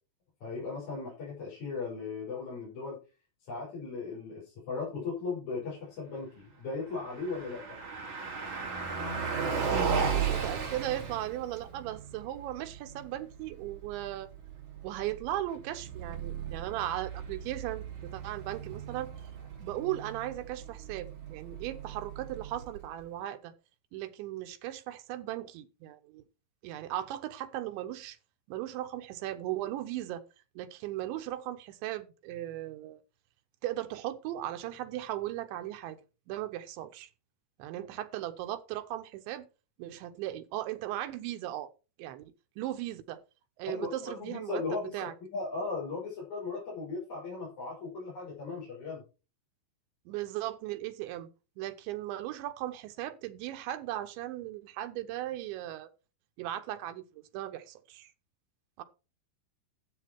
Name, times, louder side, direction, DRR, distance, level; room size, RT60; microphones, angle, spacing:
voice 1, 0.4-3.0 3.5-7.6 43.7-43.9 44.2-49.0, left 4 dB, 40° left, 6.8 m, -37 dB
Car passing by, 6.9-23.0, right 6 dB, 45° right, 4.8 m, -36 dB
voice 2, 10.0-14.3 14.8-19.1 19.6-23.5 23.9-26.2 26.6-28.2 28.5-30.2 30.6-33.0 33.6-36.0 36.3-37.1 37.6-39.5 39.8-41.7 42.0-42.2 42.6-43.2 43.6-45.1 50.1-51.3 51.6-55.9 56.4-57.0 57.3-58.1 58.8-58.9, right 14 dB, 85° right, 3.3 m, -37 dB
12.5 x 8.3 x 4.5 m
omnidirectional pair, 5.2 m